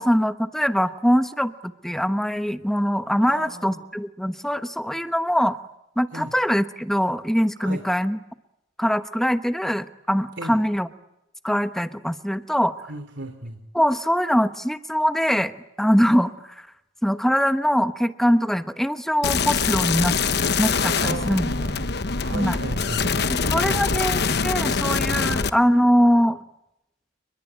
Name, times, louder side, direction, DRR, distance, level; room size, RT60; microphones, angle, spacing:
voice 1, 0.0-5.6 6.0-8.2 8.8-10.9 11.4-12.7 13.7-15.5 15.8-16.7 17.0-20.2 20.6-21.5 22.3-22.6 23.3-26.4, equal, ahead, 10 dB, 1.0 m, -22 dB
voice 2, 3.2-3.8 6.1-6.3 7.6-7.8 10.4-10.6 12.9-13.6 21.0-21.9 22.2-23.1 23.4-24.0, right 1 dB, 65° right, 6 dB, 2.9 m, -35 dB
sound 1, 19.2-25.5, left 5 dB, 55° left, 1.1 m, -24 dB
29.5 x 22.0 x 8.8 m, 0.88 s
head